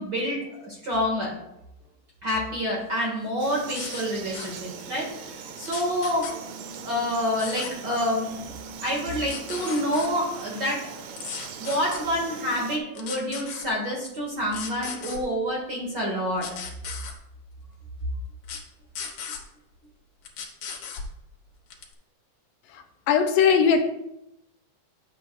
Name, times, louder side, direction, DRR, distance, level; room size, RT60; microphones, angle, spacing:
voice 1, 0.0-1.4 2.2-6.3 6.8-8.5 8.8-16.4, equal, 40° right, -3 dB, 1.7 m, -28 dB
Frog, 3.4-12.8, right 6 dB, 85° right, 2.5 m, -40 dB
sound 1, 3.7-4.0 4.3-4.6 5.6-6.3 7.4-7.7 9.0-10.1 11.2-12.0 12.9-13.7 14.5-15.2 16.4-17.1 18.4-18.6 18.9-19.4 20.2-21.1 21.7-21.9, left 6 dB, 65° left, 2.3 m, -36 dB
voice 2, 22.7-23.8, left 6 dB, 85° left, 5 dB, 2.5 m, -20 dB
10.5 x 7.6 x 2.3 m, 0.84 s
omnidirectional pair, 3.9 m